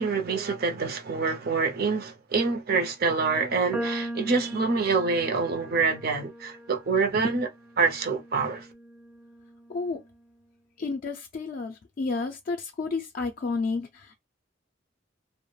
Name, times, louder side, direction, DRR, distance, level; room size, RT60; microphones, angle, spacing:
voice 1, 0.0-7.5 7.8-8.7, right 4 dB, 55° right, 0.6 m, -26 dB
sound 1, 3.7-10.1, right 1 dB, 10° right, 0.5 m, -39 dB
voice 2, 9.7-10.0 10.8-14.2, left 4 dB, 50° left, 0.4 m, -31 dB
2.3 x 2.0 x 3.1 m
head